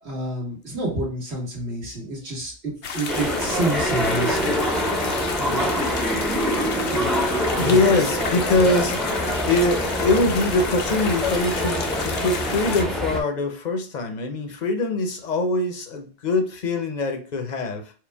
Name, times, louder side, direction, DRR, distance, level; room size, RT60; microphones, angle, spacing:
voice 1, 0.0-4.6 5.4-5.9 6.9-7.2 7.5-7.8, right 1 dB, 70° right, 1.8 m, -29 dB
sound 1, 2.8-12.8, left 5 dB, 85° left, 1.0 m, -32 dB
sound 2, 3.1-13.2, equal, ahead, 0.5 m, -25 dB
voice 2, 7.1-17.9, left 2 dB, 45° left, 0.7 m, -23 dB
4.6 x 2.2 x 3.4 m
omnidirectional pair, 1.1 m